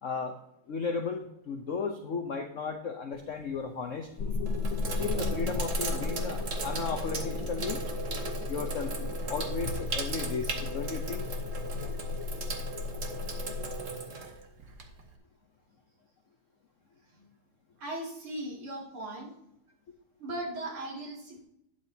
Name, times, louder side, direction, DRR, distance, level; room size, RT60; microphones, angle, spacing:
voice 1, 0.0-0.4 0.7-4.1 5.0-7.8 8.5-8.9 9.3-11.2, left 5 dB, 60° left, 5 dB, 0.8 m, -35 dB
Sink (filling or washing), 3.1-3.6 4.2-15.1, right 4 dB, 45° right, 1.3 m, -38 dB
sound 1, 4.2-13.8, left 3 dB, 90° left, 2.1 m, -34 dB
voice 2, 17.8-19.3 20.2-21.4, right 1 dB, 80° right, -3 dB, 3.4 m, -38 dB
12.0 x 9.1 x 2.8 m, 0.82 s
omnidirectional pair, 2.3 m